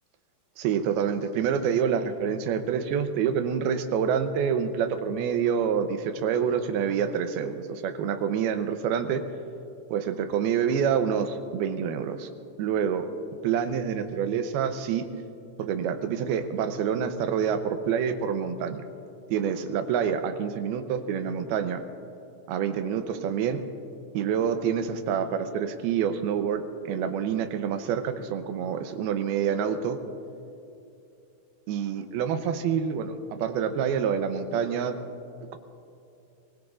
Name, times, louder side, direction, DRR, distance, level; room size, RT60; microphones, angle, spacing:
voice 1, 0.6-9.2 9.9-12.3 12.6-13.1 13.4-15.1 15.6-18.8 19.3-21.8 22.5-23.6 24.1-30.0 31.7-35.0, right 7 dB, 85° right, 8 dB, 2.7 m, -27 dB
25.0 x 20.0 x 2.5 m, 2.7 s
omnidirectional pair, 4.4 m